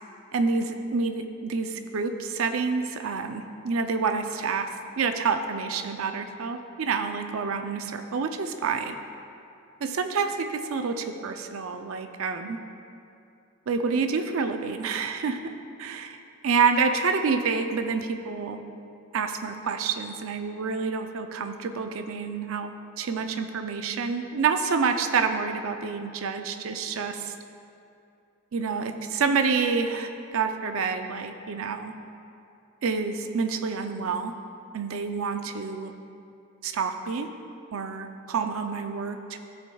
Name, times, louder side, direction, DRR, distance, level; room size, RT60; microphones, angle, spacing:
voice 1, 0.3-4.7 5.0-9.0 9.8-12.6 13.7-15.4 15.8-16.2 16.4-18.6 19.1-22.7 23.0-27.3 28.5-31.9 32.8-34.3 34.7-35.9 36.6-37.3 37.7-39.4, right 5 dB, 80° right, 7 dB, 0.5 m, -28 dB
14.0 x 6.3 x 2.3 m, 2.6 s
head